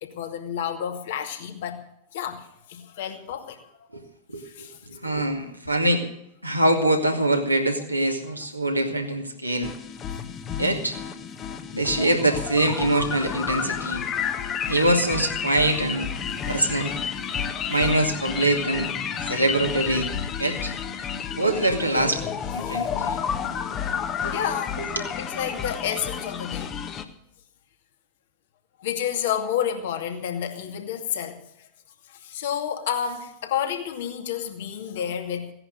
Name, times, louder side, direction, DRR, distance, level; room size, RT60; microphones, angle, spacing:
voice 1, 0.0-1.8 2.1-3.6 4.4-4.8 21.1-21.3 23.5-23.6 24.0-24.9 25.2-26.7 28.8-31.4 32.2-35.5, left 9 dB, 55° left, 5 dB, 2.4 m, -30 dB
voice 2, 4.3-6.0 6.4-9.7 10.6-11.0 11.7-14.0 14.7-16.1 16.5-16.9 17.7-18.9 19.3-20.1 20.4-20.7 21.3-22.2 22.5-23.2 24.2-24.4 25.0-25.1, right 1 dB, 90° right, 2 dB, 2.4 m, -24 dB
sound 1, 9.6-27.0, left 7 dB, 30° left, 1.5 m, -31 dB
17.0 x 10.5 x 6.6 m, 0.78 s
figure-of-eight pair, 90°, 0 cm